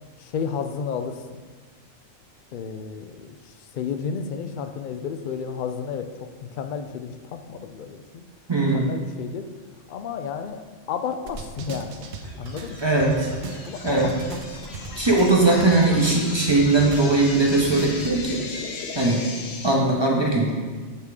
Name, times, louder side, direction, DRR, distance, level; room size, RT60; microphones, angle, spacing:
voice 1, 0.2-1.4 2.5-8.2 8.7-9.5 9.9-10.6 10.9-12.9 13.7-14.4, left 6 dB, 90° left, 7 dB, 0.4 m, -32 dB
voice 2, 8.5-8.9 12.8-13.3 13.8-14.1 15.0-18.4 18.9-19.2 19.6-20.5, right 2 dB, 25° right, -2 dB, 0.8 m, -20 dB
sound 1, 11.3-18.2, right 4 dB, 65° right, 0.8 m, -38 dB
sound 2, 12.0-19.7, left 4 dB, 60° left, 0.9 m, -36 dB
8.3 x 3.5 x 4.8 m, 1.5 s
omnidirectional pair, 1.4 m